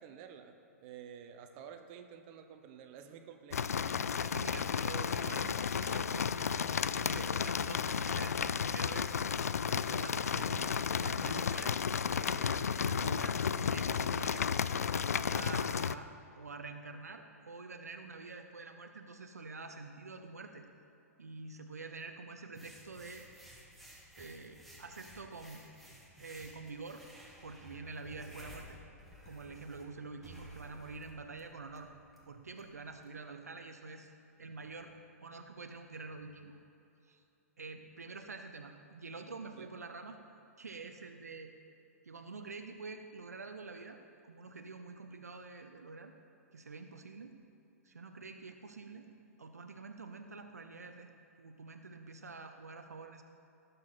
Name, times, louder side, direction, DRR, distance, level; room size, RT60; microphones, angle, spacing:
voice 1, 0.0-3.7 39.5-39.7, right 8 dB, 40° right, 6 dB, 1.0 m, -51 dB
sound 1, 3.5-16.0, left 7 dB, 70° left, 0.4 m, -33 dB
voice 2, 4.1-6.6 6.9-9.3 9.6-11.8 12.1-14.5 15.2-16.1 16.4-20.6 21.2-23.2 24.2-25.6 26.2-27.0 27.4-28.8 29.3-31.9 32.3-34.1 34.4-34.9 35.2-36.6 37.0-37.2 37.6-40.2 40.6-41.5 42.0-46.1 46.5-47.4 47.8-49.1 49.4-51.1 51.4-53.2, right 3 dB, 75° right, 6 dB, 0.8 m, -47 dB
sound 2, 22.5-33.1, right 1 dB, ahead, 1.9 m, -54 dB
18.0 x 6.9 x 4.3 m, 2.7 s
figure-of-eight pair, 110°, 9 cm